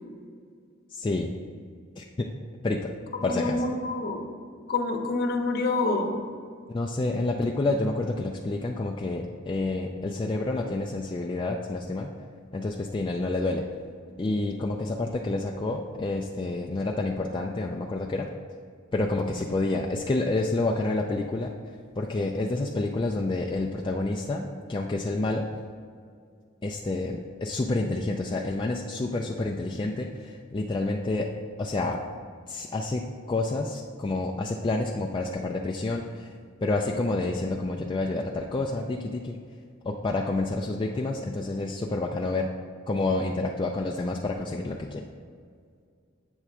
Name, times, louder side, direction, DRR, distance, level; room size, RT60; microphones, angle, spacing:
voice 1, 0.9-1.3 2.0-2.3 2.6-2.9 3.2-3.6 6.7-12.1 12.5-13.7 14.2-18.3 18.9-21.5 22.0-25.5 26.6-31.3 31.6-32.0 32.5-36.3 36.6-39.4 39.8-42.5 42.9-45.0, left 2 dB, 25° left, 0 dB, 0.3 m, -29 dB
voice 2, 3.2-4.3 4.7-6.2, left 3 dB, 50° left, 3 dB, 0.8 m, -27 dB
8.0 x 3.3 x 6.0 m, 2.1 s
head